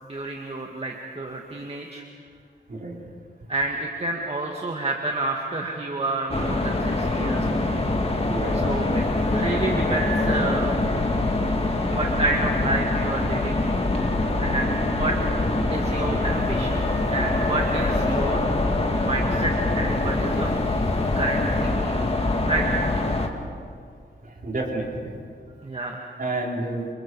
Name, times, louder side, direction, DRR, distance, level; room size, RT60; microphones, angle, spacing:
voice 1, 0.0-2.0 3.5-7.7 8.6-9.0 9.3-10.8 11.9-13.6 13.9-14.1 14.4-15.2 15.7-18.4 19.0-20.5 21.1-21.9 22.4-23.3 25.6-26.0, right 2 dB, 35° right, 0 dB, 1.9 m, -29 dB
sound 1, 6.3-23.3, left 2 dB, 30° left, 2.2 m, -24 dB
voice 2, 8.3-8.6 24.2-25.2 26.2-26.9, right 2 dB, 50° right, -2 dB, 4.6 m, -30 dB
28.5 x 27.5 x 4.8 m, 2.2 s
wide cardioid pair, 110°, 19 cm